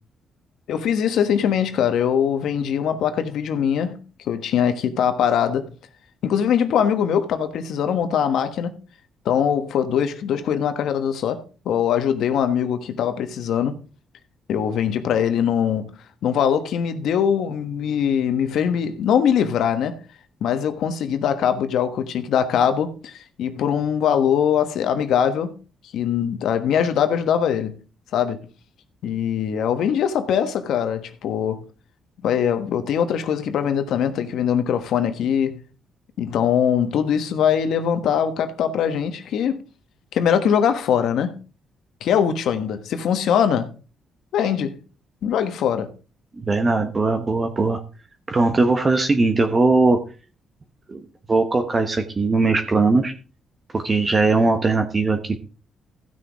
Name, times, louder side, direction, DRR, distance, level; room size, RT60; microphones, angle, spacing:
voice 1, 0.7-5.7 6.2-8.7 9.2-13.8 14.5-15.9 16.2-20.0 20.4-25.5 25.9-27.8 28.1-28.4 29.0-31.6 32.2-35.6 36.2-39.6 40.1-41.4 42.0-43.7 44.3-44.7 45.2-45.9, left 8 dB, 75° left, 1.2 m, -22 dB
voice 2, 46.4-47.8 48.3-50.0 50.9-51.0 51.3-53.1 53.7-55.4, right 3 dB, 30° right, 1.1 m, -19 dB
15.0 x 6.4 x 3.5 m
cardioid pair, 90°, 0 cm